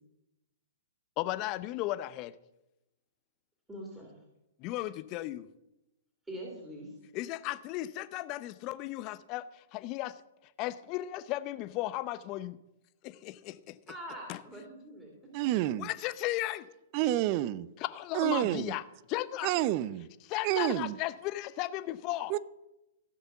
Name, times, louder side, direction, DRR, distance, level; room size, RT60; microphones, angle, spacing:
voice 1, 1.2-2.3 4.6-5.5 7.1-10.2 10.6-12.6 13.0-13.8 14.3-14.4 15.7-16.7 17.8-19.5 20.2-22.4, left 16 dB, 35° left, 0.7 m, -35 dB
voice 2, 3.7-4.1 6.3-6.9 13.9-15.1, right 1 dB, 10° right, 2.9 m, -43 dB
voice 3, 15.3-15.9 16.9-17.7 18.1-18.7 19.4-20.1 20.4-21.0 22.3-22.4, right 14 dB, 40° right, 0.5 m, -29 dB
16.0 x 5.8 x 7.0 m
hypercardioid pair, 120°, 0 cm